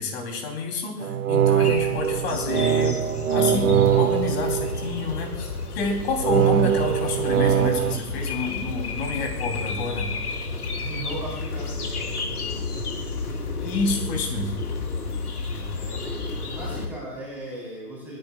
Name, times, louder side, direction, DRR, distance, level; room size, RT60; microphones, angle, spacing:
voice 1, 0.0-3.0 3.3-10.1 13.6-14.6, left 3 dB, 40° left, 3 dB, 3.7 m, -28 dB
sound 1, 1.0-5.3 6.2-8.0, right 9 dB, 55° right, 0.8 m, -22 dB
sound 2, 1.3-16.9, left 3 dB, 65° left, 2.4 m, -32 dB
voice 2, 1.8-2.1 10.8-11.9 15.7-16.2 16.5-18.2, right 1 dB, 5° right, -6 dB, 4.5 m, -37 dB
28.0 x 10.5 x 2.5 m, 0.99 s
figure-of-eight pair, 125°, 48 cm